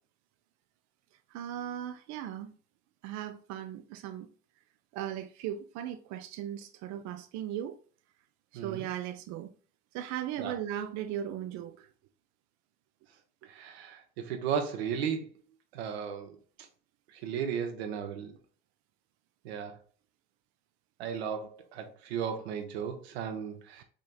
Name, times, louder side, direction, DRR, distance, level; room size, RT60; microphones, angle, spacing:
voice 1, 1.3-2.5 3.0-4.3 4.9-7.8 8.5-9.5 9.9-11.9, right 11 dB, 65° right, 0.4 m, -37 dB
voice 2, 8.5-8.9 10.4-10.6 13.4-15.3 15.7-16.4 17.1-18.3 19.4-19.8 21.0-23.8, right 7 dB, 90° right, 0.8 m, -35 dB
4.9 x 2.7 x 2.3 m
hypercardioid pair, 70°, 31 cm